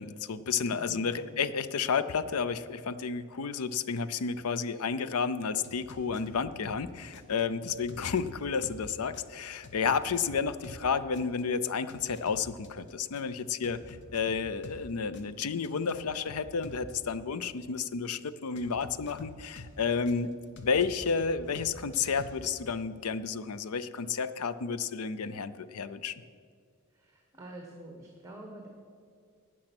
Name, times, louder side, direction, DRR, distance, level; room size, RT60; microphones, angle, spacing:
voice 1, 0.0-20.3 20.6-26.2, left 5 dB, 85° left, 14 dB, 0.5 m, -31 dB
voice 2, 0.7-1.4 26.9-28.7, right 1 dB, 15° right, 1 dB, 1.2 m, -47 dB
sound 1, 5.6-6.8 7.1-10.8 11.1-14.8 15.1-16.9 18.6-20.1 20.6-22.5, left 2 dB, 55° left, 1.1 m, -48 dB
17.5 x 6.3 x 6.0 m, 2.2 s
head